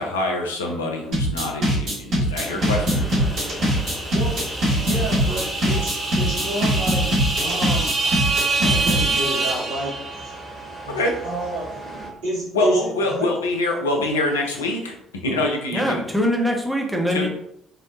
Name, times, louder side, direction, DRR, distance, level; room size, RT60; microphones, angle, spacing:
voice 1, 0.0-3.0 10.9-11.2 12.5-16.0 17.1-17.3, left 2 dB, 80° left, 1 dB, 0.4 m, -25 dB
sound 1, 1.1-9.1, equal, 55° right, 1.0 m, -21 dB
sound 2, 2.3-12.1, right 1 dB, 30° left, 1.0 m, -37 dB
sound 3, 2.5-10.5, right 3 dB, 25° right, 1.0 m, -27 dB
voice 2, 4.1-7.1 7.4-10.4 10.8-11.9 12.2-13.3, right 1 dB, 70° right, -6 dB, 0.6 m, -30 dB
voice 3, 15.7-17.3, equal, 5° right, 1 dB, 0.6 m, -22 dB
2.9 x 2.1 x 2.4 m, 0.73 s
figure-of-eight pair, 50°, 0 cm